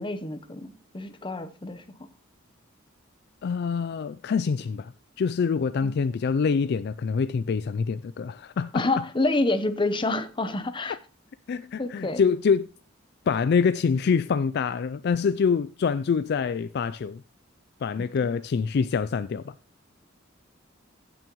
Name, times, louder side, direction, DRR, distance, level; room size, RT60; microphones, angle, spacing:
voice 1, 0.0-2.1 5.8-6.0 8.7-11.0 11.8-12.2 18.2-18.3, left 2 dB, 25° left, 0.8 m, -28 dB
voice 2, 3.4-4.9 5.2-9.0 11.5-12.7 13.3-17.2 17.8-19.5, left 5 dB, 55° left, 0.3 m, -25 dB
15.5 x 6.3 x 3.0 m
head